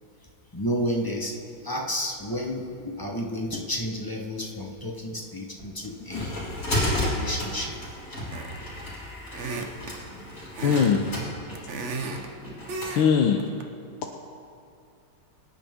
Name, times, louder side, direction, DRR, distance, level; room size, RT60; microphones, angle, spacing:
voice 1, 0.5-1.3 1.6-6.4 6.9-7.7 9.5-9.6, equal, 20° left, 0 dB, 0.6 m, -31 dB
sound 1, 5.6-13.0, left 1 dB, 35° left, 4.4 m, -32 dB
sound 2, 8.3-8.7 9.3-10.0 10.5-11.0 11.3-12.3 12.7-13.1 13.4-13.6, right 3 dB, 55° right, 0.8 m, -34 dB
voice 2, 10.6-11.0 12.9-13.4, left 7 dB, 70° left, 2 dB, 1.5 m, -21 dB
24.0 x 10.0 x 3.6 m, 2.5 s
omnidirectional pair, 2.4 m